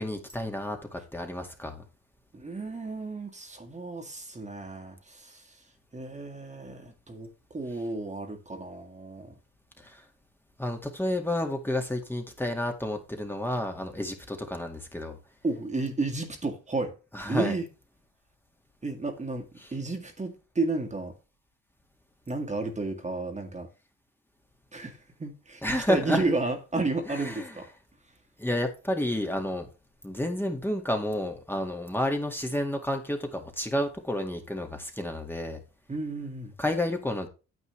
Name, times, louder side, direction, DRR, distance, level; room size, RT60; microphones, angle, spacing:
voice 1, 0.0-1.8 9.8-10.0 10.6-15.2 17.1-17.6 19.6-19.7 25.6-26.2 27.1-27.5 28.4-29.7 30.0-35.6 36.6-37.3, left 1 dB, 5° left, 1.9 m, -30 dB
voice 2, 2.3-5.6 5.9-9.3 15.4-17.0 17.3-17.7 18.8-21.1 22.3-23.7 24.7-27.7 35.9-36.5, right 3 dB, 25° right, 2.0 m, -32 dB
9.5 x 8.0 x 3.3 m
cardioid pair, 90°, 30 cm